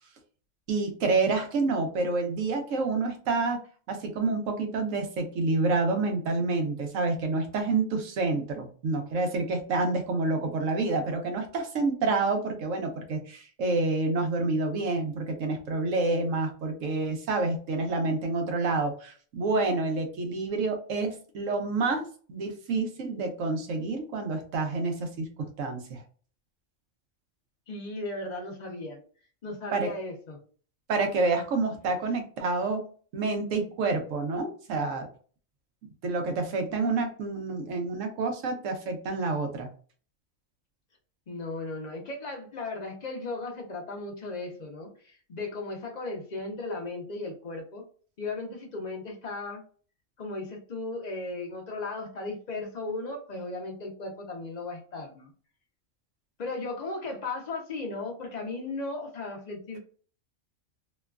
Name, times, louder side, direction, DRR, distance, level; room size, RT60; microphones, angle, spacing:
voice 1, 0.7-3.6 3.9-26.0 29.7-29.9 30.9-32.8 33.1-35.1 36.0-39.7, right 3 dB, 85° right, 4 dB, 1.1 m, -28 dB
voice 2, 27.7-29.0 29.4-30.4 41.3-47.8 48.2-49.6 50.2-55.3 56.4-59.8, left 2 dB, 45° left, 2 dB, 0.7 m, -36 dB
3.0 x 2.2 x 2.3 m, 0.42 s
omnidirectional pair, 1.3 m